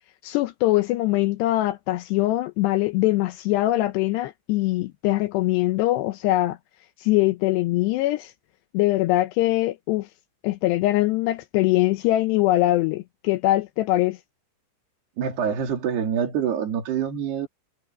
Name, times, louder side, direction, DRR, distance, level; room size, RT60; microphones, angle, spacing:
voice 1, 0.2-6.6 7.0-8.3 8.7-10.1 10.4-14.2, left 16 dB, 90° left, 2.4 m, -22 dB
voice 2, 15.2-17.5, right 8 dB, 55° right, 4.7 m, -26 dB
omnidirectional pair, 5.9 m